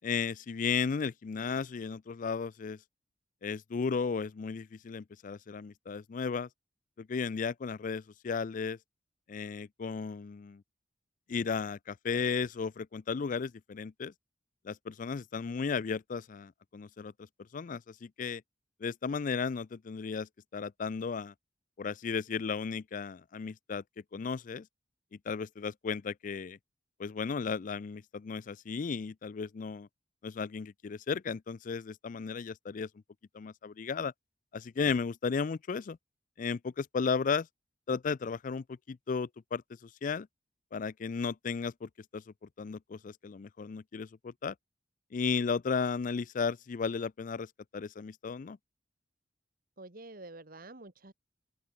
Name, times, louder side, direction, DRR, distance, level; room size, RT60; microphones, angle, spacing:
voice 1, 0.0-2.8 3.4-6.5 7.0-8.8 9.3-10.6 11.3-14.1 14.6-17.1 17.5-18.4 18.8-21.3 21.8-23.8 24.1-24.7 25.1-26.6 27.0-29.9 30.2-32.9 33.3-34.1 34.5-36.0 36.4-37.5 37.9-40.3 40.7-44.5 45.1-48.6, left 5 dB, 45° left, 0.4 m, -34 dB
voice 2, 49.8-51.1, right 2 dB, 55° right, 2.1 m, -48 dB
open air
head